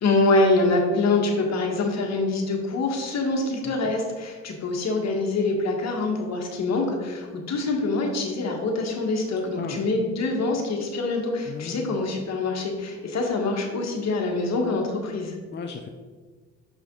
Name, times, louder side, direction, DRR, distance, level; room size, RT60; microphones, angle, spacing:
voice 1, 0.0-15.4, left 2 dB, 60° left, 2 dB, 1.6 m, -25 dB
voice 2, 3.6-4.0 9.6-9.9 11.5-12.0 15.5-15.9, left 5 dB, 35° left, 3 dB, 0.6 m, -36 dB
6.6 x 5.7 x 3.8 m, 1.5 s
cardioid pair, 90°, 30 cm